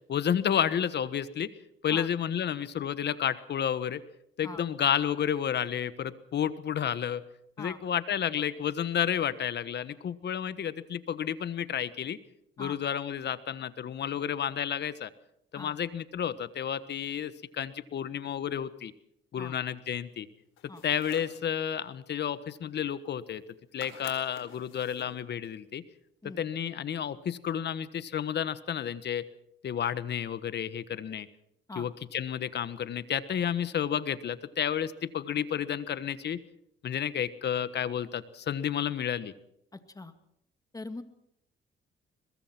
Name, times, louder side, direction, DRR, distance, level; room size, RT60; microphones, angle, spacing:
voice 1, 0.1-1.5 1.8-4.0 4.4-7.2 7.6-12.2 12.6-15.1 15.5-18.9 19.3-20.3 20.8-23.4 23.7-25.8 26.2-29.3 29.6-31.3 31.7-36.4 36.8-39.3, left 9 dB, 60° left, 15 dB, 1.4 m, -31 dB
sound 1, 20.6-21.4 22.9-23.0 23.2-23.5 23.8-25.2, left 9 dB, 80° left, 4.4 m, -48 dB
voice 2, 39.7-40.1 40.7-41.0, left 2 dB, 20° left, 9 dB, 2.2 m, -42 dB
22.5 x 21.5 x 6.1 m, 0.77 s
cardioid pair, 90°, 20 cm